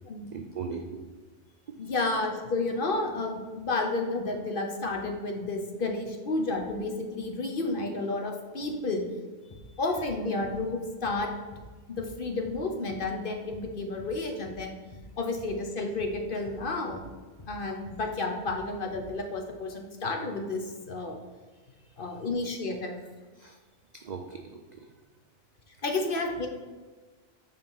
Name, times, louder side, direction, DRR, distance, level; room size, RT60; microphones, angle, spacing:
voice 1, 0.3-1.1 9.4-9.8 21.5-22.0 23.4-23.6 23.9-24.9, right 5 dB, 60° right, 4 dB, 0.4 m, -40 dB
voice 2, 1.8-9.0 9.8-11.3 11.9-14.8 15.2-17.0 17.5-21.2 22.0-23.0 25.8-26.5, left 2 dB, 50° left, 3 dB, 0.9 m, -31 dB
sound 1, 9.5-9.7 10.0-10.2 10.4-10.6 11.0-11.2 11.5-11.7 12.0-12.2 12.4-12.6 12.9-13.1 13.5-13.7 14.0-14.2 14.4-14.6 14.9-15.1 15.4-15.6 16.0-16.2 16.5-16.7 16.9-17.1 17.4-17.6 17.8-18.0 18.5-18.7 18.9-19.1, left 1 dB, 35° left, 0.5 m, -47 dB
5.1 x 4.8 x 5.4 m, 1.3 s
omnidirectional pair, 1.3 m